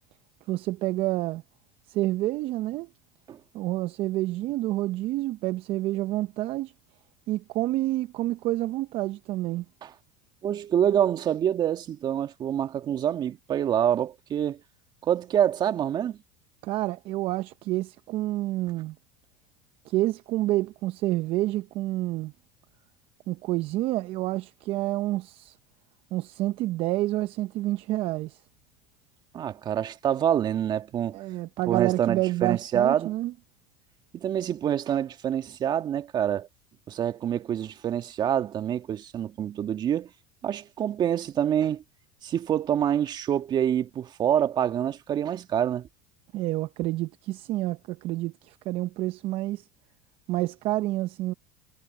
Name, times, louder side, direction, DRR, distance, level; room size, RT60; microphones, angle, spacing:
voice 1, 0.5-1.4 1.9-2.9 3.5-6.7 7.3-9.6 16.6-19.0 19.8-22.3 23.3-25.6 26.1-28.4 31.1-33.3 46.3-49.7 50.3-51.3, right 17 dB, 55° right, 0.9 m, -28 dB
voice 2, 10.4-14.6 15.0-16.2 29.3-31.2 31.7-33.1 34.1-36.5 36.9-40.1 40.4-41.8 42.2-45.9, right 10 dB, 40° right, 2.1 m, -26 dB
hypercardioid pair, 95°, 11 cm